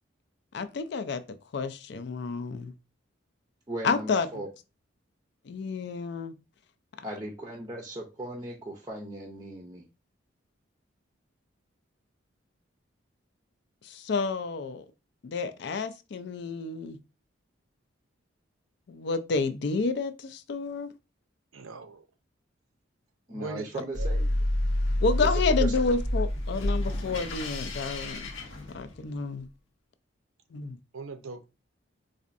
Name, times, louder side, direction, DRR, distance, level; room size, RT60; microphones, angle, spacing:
voice 1, 0.5-1.2 1.5-2.7 3.8-4.4 5.4-6.3 13.8-14.9 15.2-17.0 18.9-20.9 25.0-28.3 28.7-29.5 30.5-30.8, left 4 dB, 55° left, 0.4 m, -30 dB
voice 2, 3.7-4.5 7.0-9.8 23.3-24.3 25.6-25.7, right 1 dB, 20° right, 0.5 m, -38 dB
voice 3, 21.5-22.0 23.3-24.2 30.9-31.4, right 4 dB, 85° right, 0.6 m, -40 dB
sound 1, 23.9-29.2, left 1 dB, 75° left, 0.7 m, -29 dB
4.1 x 2.6 x 2.5 m
head